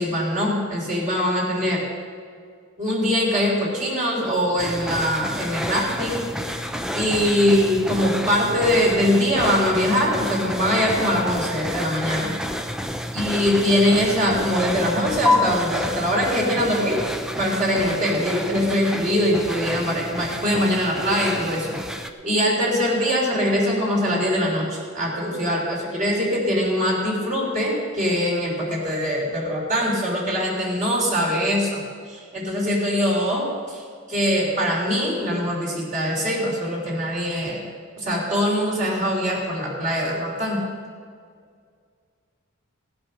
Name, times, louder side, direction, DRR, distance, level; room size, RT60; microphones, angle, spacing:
voice 1, 0.0-1.8 2.8-6.2 6.9-12.3 13.1-17.0 17.4-21.7 22.2-31.8 32.1-33.8 34.1-37.6 38.0-40.6, equal, 40° right, -3 dB, 3.3 m, -22 dB
sound 1, 4.6-22.1, left 1 dB, 5° right, 0.5 m, -29 dB
16.0 x 8.7 x 6.3 m, 2.1 s
head